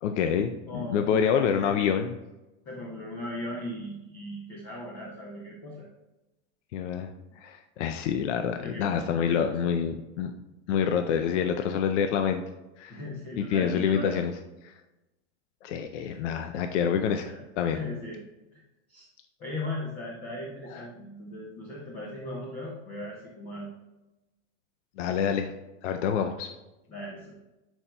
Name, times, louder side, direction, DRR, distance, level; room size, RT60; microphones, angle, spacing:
voice 1, 0.0-2.1 6.7-7.1 7.4-10.3 10.7-12.4 12.8-13.0 13.4-14.3 14.6-14.7 15.6-17.3 17.6-17.8 20.7-20.9 25.0-25.5 25.8-26.5, left 7 dB, 70° left, 6 dB, 0.5 m, -27 dB
voice 2, 0.7-1.8 2.7-5.9 8.6-9.6 12.9-14.2 16.1-16.2 17.1-18.2 18.5-18.6 18.9-19.1 19.4-23.7 26.9-27.3, left 1 dB, 15° left, -3 dB, 0.4 m, -38 dB
10.5 x 4.5 x 2.2 m, 1.0 s
supercardioid pair, 180°, 38 cm